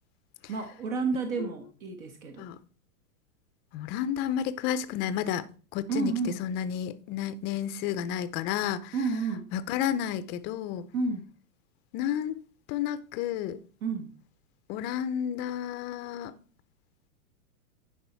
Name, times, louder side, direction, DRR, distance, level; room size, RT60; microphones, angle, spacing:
voice 1, 0.5-2.5 5.9-6.4 8.9-9.5 10.9-11.3 13.8-14.2, right 4 dB, 65° right, 1.5 m, -30 dB
voice 2, 3.7-5.4 5.7-6.1 6.4-8.9 9.5-10.8 11.9-12.4 12.7-13.6 14.7-16.3, left 10 dB, 25° left, 0.5 m, -31 dB
10.5 x 4.9 x 4.3 m
hypercardioid pair, 135°, 44 cm